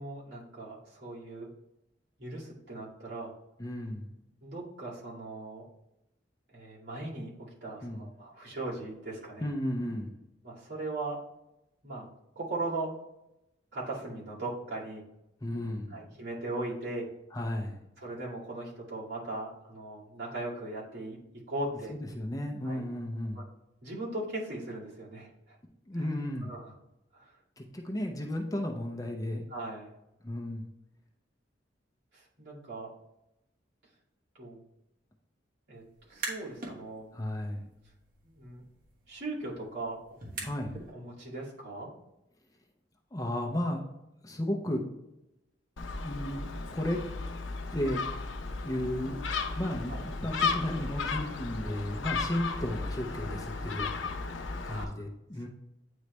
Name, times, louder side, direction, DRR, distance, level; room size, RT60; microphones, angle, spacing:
voice 1, 0.0-1.5 2.2-3.3 4.4-5.6 6.5-9.5 10.4-11.2 11.8-12.1 12.4-12.9 13.7-15.0 15.9-17.1 18.0-21.9 22.6-22.8 23.3-23.4 23.8-25.6 25.9-26.1 26.4-26.7 27.1-27.4 29.5-29.9 32.1-32.9 34.3-34.6 35.7-35.8 36.1-37.1 38.2-38.6 39.1-40.0 40.9-41.9 49.9-50.0 54.7-54.9, right 2 dB, 60° right, -7 dB, 2.2 m, -38 dB
voice 2, 3.6-4.1 7.8-8.1 9.4-10.2 15.4-16.1 17.3-17.8 21.9-23.4 25.9-26.5 27.6-29.4 30.2-30.7 37.1-37.7 40.4-40.8 43.1-43.8 44.2-44.8 46.0-46.4 46.7-47.0 47.7-48.0 48.6-49.2 49.6-54.1 54.6-55.5, left 1 dB, 20° left, 1 dB, 0.6 m, -34 dB
sound 1, 35.9-36.8 37.2-40.9, right 3 dB, 45° right, 1.3 m, -43 dB
Gull seagull, 45.8-54.8, left 4 dB, 85° left, 0.6 m, -35 dB
9.3 x 3.2 x 3.2 m, 0.90 s
head